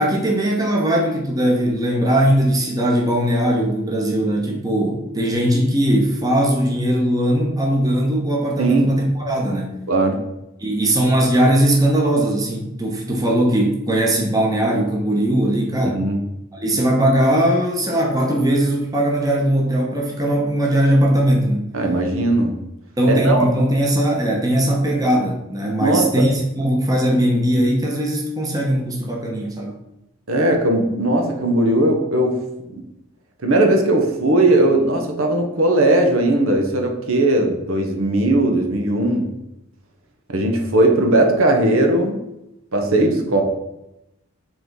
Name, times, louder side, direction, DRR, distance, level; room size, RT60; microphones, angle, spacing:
voice 1, 0.0-9.7 10.6-16.0 16.5-21.7 23.0-29.8, right 1 dB, 15° right, -1 dB, 1.1 m, -19 dB
voice 2, 9.9-10.2 15.8-16.2 21.7-22.6 23.1-23.5 25.8-26.1 30.3-32.4 32.7-32.8 33.4-39.3 40.3-42.2 42.7-43.4, right 1 dB, 70° right, 3 dB, 1.1 m, -18 dB
7.7 x 3.9 x 4.7 m, 0.88 s
head